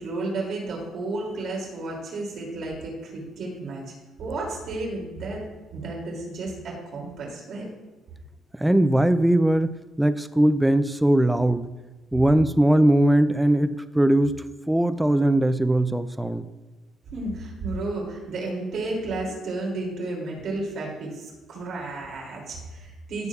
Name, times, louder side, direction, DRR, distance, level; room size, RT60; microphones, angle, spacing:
voice 1, 0.0-3.9 4.2-5.4 5.7-7.7 17.1-23.3, right 2 dB, 50° right, -2 dB, 2.6 m, -32 dB
voice 2, 8.5-9.7 10.0-11.7 12.1-16.5, right 1 dB, 5° right, 11 dB, 0.3 m, -20 dB
16.0 x 6.8 x 2.4 m, 1.1 s
cardioid pair, 170°, 0 cm